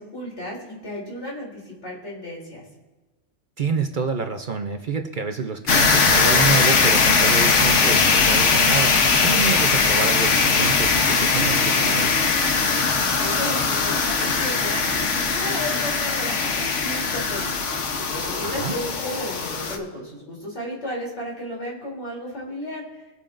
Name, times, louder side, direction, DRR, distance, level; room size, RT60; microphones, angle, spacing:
voice 1, 0.0-2.6 13.0-23.0, equal, 70° left, -4 dB, 3.5 m, -34 dB
voice 2, 3.6-12.2 18.4-18.8, right 5 dB, 50° right, 5 dB, 0.8 m, -28 dB
sound 1, 5.7-19.8, left 4 dB, 90° left, 1.3 m, -20 dB
23.5 x 8.7 x 2.6 m, 1.1 s
omnidirectional pair, 1.2 m